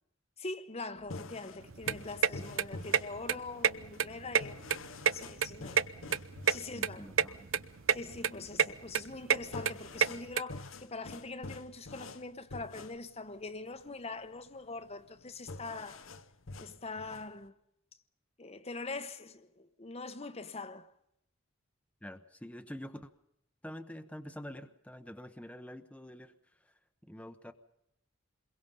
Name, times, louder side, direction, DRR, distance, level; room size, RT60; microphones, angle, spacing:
voice 1, 0.4-5.9 6.5-7.1 7.9-16.1 16.6-17.6 18.4-20.9, left 3 dB, 30° left, 1.0 m, -43 dB
sound 1, 1.0-17.5, left 3 dB, 80° left, 1.1 m, -48 dB
sound 2, 1.6-10.4, right 7 dB, 70° right, 0.8 m, -30 dB
voice 2, 6.7-7.6 22.0-23.1 23.6-26.3 27.0-27.5, equal, 5° left, 0.9 m, -46 dB
27.5 x 22.5 x 5.5 m
head